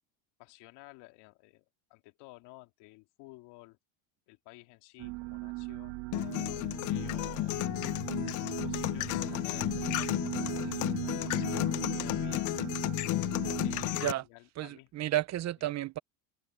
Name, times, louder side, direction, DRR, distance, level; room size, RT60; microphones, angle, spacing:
voice 1, 0.4-3.8 4.3-6.0 6.9-7.6 8.6-11.4 12.0-12.7 13.6-14.9, left 22 dB, 70° left, 2.6 m, -54 dB
sound 1, 5.0-14.0, right 25 dB, 90° right, 1.8 m, -39 dB
sound 2, 6.1-14.1, left 17 dB, 45° left, 0.6 m, -32 dB
voice 2, 13.9-14.2 14.6-16.0, right 14 dB, 40° right, 0.8 m, -32 dB
open air
supercardioid pair, 130°, 43 cm